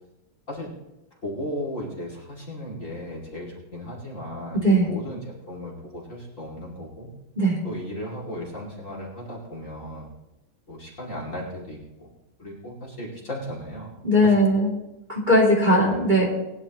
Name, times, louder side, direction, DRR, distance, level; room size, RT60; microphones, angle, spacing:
voice 1, 1.2-7.1 7.6-10.1 10.7-12.1 12.4-13.9 14.2-14.3 15.7-16.0, left 1 dB, 35° left, -3 dB, 2.8 m, -35 dB
voice 2, 14.0-14.7 15.1-16.2, equal, 20° right, -3 dB, 2.9 m, -19 dB
20.5 x 10.5 x 3.0 m, 0.94 s
omnidirectional pair, 2.3 m